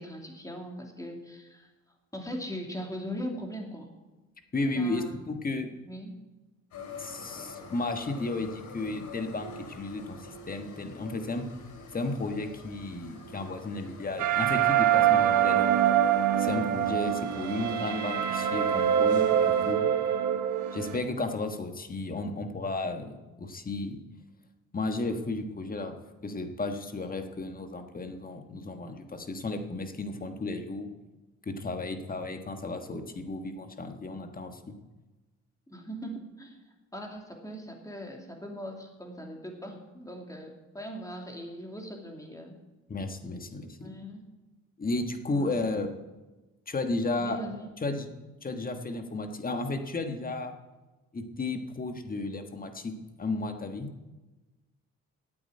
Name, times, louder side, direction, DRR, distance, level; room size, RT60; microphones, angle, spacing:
voice 1, 0.0-1.7 2.1-3.9 4.7-5.2 5.8-6.1 35.7-36.6 36.9-42.6 43.8-44.2 45.3-45.5 47.2-47.7, equal, 10° left, 1 dB, 2.6 m, -40 dB
voice 2, 4.5-5.7 7.0-11.5 11.9-15.8 16.4-19.9 20.7-24.0 24.7-25.9 26.2-30.9 31.5-34.7 42.9-43.9 44.8-45.9 46.7-47.4 47.8-48.1 48.4-50.6 51.1-52.9 53.2-53.9, left 2 dB, 30° left, 6 dB, 1.4 m, -33 dB
sound 1, 6.7-19.7, left 3 dB, 75° left, 2.7 m, -46 dB
sound 2, 14.2-21.0, right 10 dB, 80° right, 1.3 m, -25 dB
8.9 x 8.7 x 9.0 m, 1.1 s
cardioid pair, 90°, 30 cm